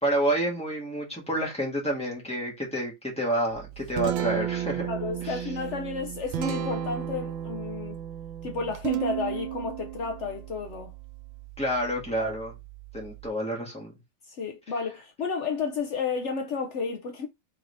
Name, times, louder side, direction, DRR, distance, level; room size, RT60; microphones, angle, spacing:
voice 1, 0.0-4.9 5.2-5.4 11.6-12.5 12.9-13.9, right 1 dB, 5° left, 1.3 m, -29 dB
Guitar, 3.5-13.3, right 11 dB, 85° right, 1.4 m, -34 dB
voice 2, 4.8-8.0 8.4-10.9 14.3-17.3, left 5 dB, 80° left, 0.6 m, -32 dB
3.9 x 3.5 x 3.3 m
omnidirectional pair, 2.0 m